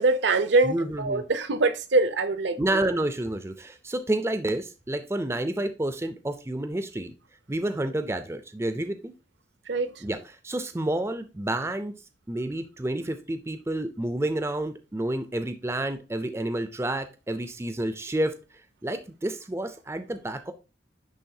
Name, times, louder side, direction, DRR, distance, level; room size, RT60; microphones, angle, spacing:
voice 1, 0.0-2.8 9.7-9.9, right 3 dB, 70° right, 0.6 m, -24 dB
voice 2, 0.6-1.2 2.6-7.1 7.5-9.1 10.0-10.2 10.4-12.0 12.3-18.3 18.8-20.5, right 1 dB, 15° right, 0.4 m, -29 dB
10.5 x 3.5 x 2.6 m
head